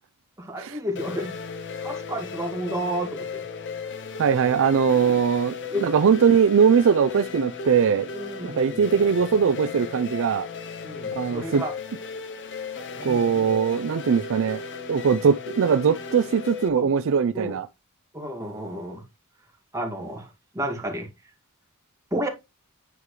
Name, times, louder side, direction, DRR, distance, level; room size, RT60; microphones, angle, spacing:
voice 1, 0.4-1.3 1.8-3.2 5.7-5.8 8.1-8.8 10.8-11.7 13.0-13.5 16.8-16.9 17.3-17.6 18.1-19.0 19.7-20.3 20.5-21.1 22.1-22.3, right 1 dB, 15° right, 2.2 m, -31 dB
sound 1, 1.0-16.7, left 5 dB, 55° left, 0.9 m, -36 dB
voice 2, 4.2-8.1 8.4-10.5 11.1-11.6 13.0-14.6 14.9-17.7, right 6 dB, 60° right, 0.4 m, -21 dB
9.7 x 4.7 x 3.2 m
head